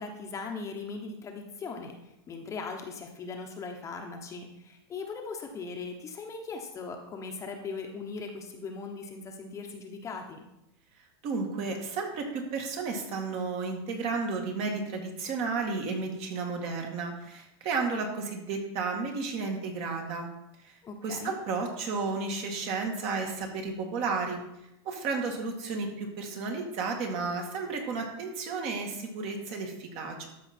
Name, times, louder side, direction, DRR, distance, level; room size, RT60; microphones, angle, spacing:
voice 1, 0.0-2.0 2.3-10.4 20.8-21.4, left 4 dB, 20° left, 3 dB, 1.0 m, -39 dB
voice 2, 11.2-20.3 20.6-20.7 21.0-24.4 24.8-30.3, right 4 dB, 45° right, 2 dB, 2.1 m, -32 dB
13.0 x 5.2 x 4.4 m, 0.86 s
supercardioid pair, 140°, 13 cm